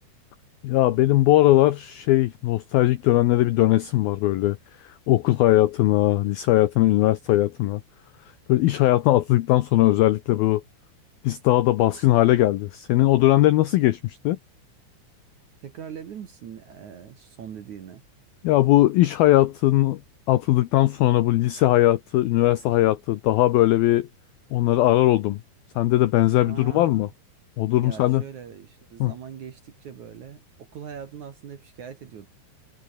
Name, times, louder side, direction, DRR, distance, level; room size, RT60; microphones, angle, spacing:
voice 1, 0.6-4.6 4.8-7.8 8.5-10.6 11.2-14.4 18.4-20.0 20.3-24.1 24.5-25.4 25.8-27.1 27.6-28.2 29.0-29.1, left 15 dB, 80° left, 2.1 m, -19 dB
voice 2, 15.6-18.0 26.4-27.1 27.8-32.3, right 8 dB, 55° right, 2.3 m, -41 dB
omnidirectional pair, 5.5 m